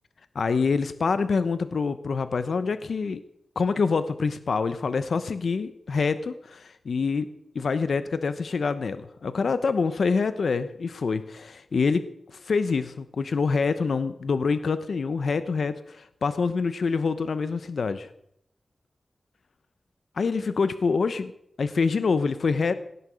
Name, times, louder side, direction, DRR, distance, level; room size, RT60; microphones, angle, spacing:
voice 1, 0.3-3.2 3.6-7.3 7.5-12.0 12.3-18.1 20.2-21.3 21.6-22.7, left 4 dB, 80° left, 12 dB, 0.8 m, -26 dB
17.5 x 11.0 x 6.3 m, 0.74 s
cardioid pair, 65°, 0 cm